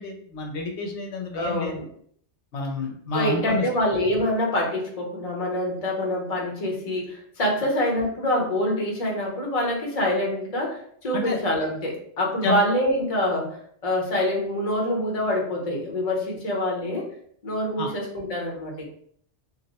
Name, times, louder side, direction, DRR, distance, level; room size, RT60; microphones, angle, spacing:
voice 1, 0.0-1.7 2.5-3.7 11.1-11.4 12.4-12.6 17.8-17.9, left 3 dB, 75° left, 1 dB, 0.9 m, -29 dB
voice 2, 1.3-1.9 3.1-17.1 17.4-18.8, left 1 dB, 35° left, -1 dB, 0.8 m, -26 dB
2.4 x 2.0 x 3.9 m, 0.63 s
omnidirectional pair, 1.2 m